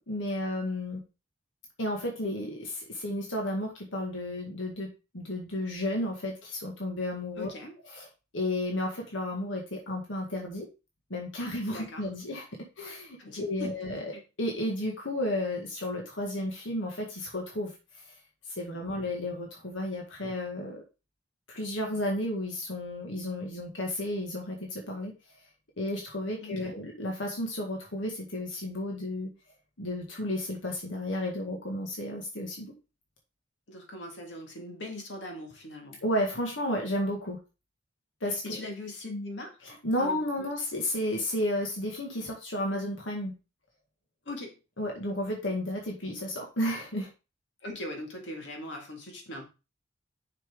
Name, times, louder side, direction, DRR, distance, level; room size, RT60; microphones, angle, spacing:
voice 1, 0.1-1.0 1.8-7.5 7.9-8.1 8.3-10.7 11.1-12.5 12.8-14.1 14.4-17.7 18.5-20.8 21.5-25.1 25.8-29.3 29.8-32.7 36.0-37.4 38.2-38.6 39.6-43.3 44.8-47.1, left 1 dB, 90° left, 0 dB, 1.9 m, -32 dB
voice 2, 7.4-7.7 11.7-12.1 13.2-13.9 26.4-26.7 33.7-36.0 38.2-39.6 40.0-40.5 44.3-44.5 47.6-49.4, left 1 dB, 65° left, 2 dB, 2.2 m, -40 dB
6.6 x 5.9 x 3.8 m, 0.29 s
head